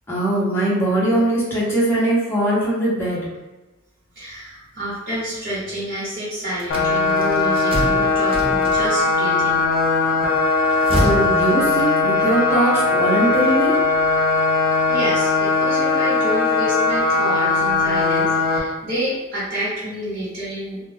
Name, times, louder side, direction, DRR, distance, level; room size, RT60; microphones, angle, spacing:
voice 1, 0.1-3.2 11.0-13.8, right 1 dB, 10° left, -8 dB, 0.9 m, -20 dB
voice 2, 4.1-9.6 14.9-20.8, equal, 45° right, -9 dB, 1.1 m, -28 dB
sound 1, 6.6-9.2 10.5-12.3, right 1 dB, 25° right, 0.4 m, -27 dB
sound 2, 6.7-18.6, left 3 dB, 45° left, 0.5 m, -19 dB
2.4 x 2.2 x 3.3 m, 1.1 s
head